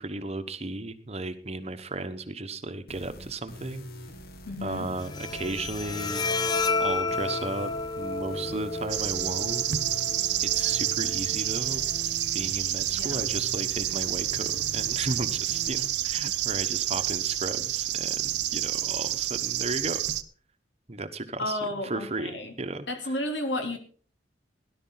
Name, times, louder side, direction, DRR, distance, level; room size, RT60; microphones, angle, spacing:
voice 1, 0.0-3.9 4.6-6.2 6.8-9.6 10.4-11.8 12.3-20.0 20.9-21.6 21.8-23.1, right 2 dB, 35° right, 9 dB, 1.1 m, -35 dB
sound 1, 2.9-15.7, left 1 dB, 55° left, 1.8 m, -43 dB
voice 2, 4.4-4.9 13.0-13.2 21.4-22.5 22.9-23.8, left 1 dB, 75° left, 5 dB, 3.3 m, -32 dB
Bowed string instrument, 5.0-12.0, left 3 dB, 20° left, 0.6 m, -32 dB
sound 2, 8.9-20.2, right 13 dB, 70° right, 0.8 m, -29 dB
17.5 x 11.5 x 3.9 m, 0.43 s
head